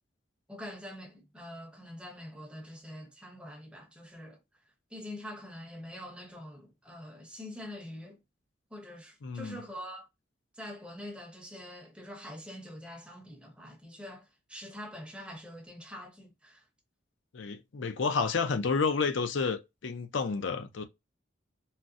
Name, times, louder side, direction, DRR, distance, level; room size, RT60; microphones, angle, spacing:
voice 1, 0.5-4.4 4.9-8.2 8.7-10.1 10.5-16.6, left 1 dB, 5° right, 0.9 m, -45 dB
voice 2, 9.2-9.6 17.3-20.8, left 4 dB, 75° left, 0.5 m, -30 dB
3.9 x 2.1 x 2.4 m
head